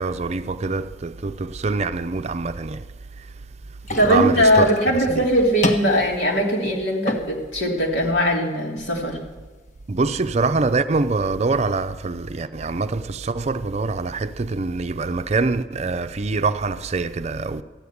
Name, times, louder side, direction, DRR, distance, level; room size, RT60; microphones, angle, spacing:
voice 1, 0.0-2.9 3.2-3.3 3.9-4.7 5.1-5.2 9.9-17.6, right 3 dB, 40° right, 0.5 m, -24 dB
sound 1, 3.8-11.8, left 2 dB, 45° left, 1.4 m, -34 dB
voice 2, 4.0-9.2, equal, 85° left, 3.3 m, -20 dB
14.0 x 9.5 x 8.4 m
head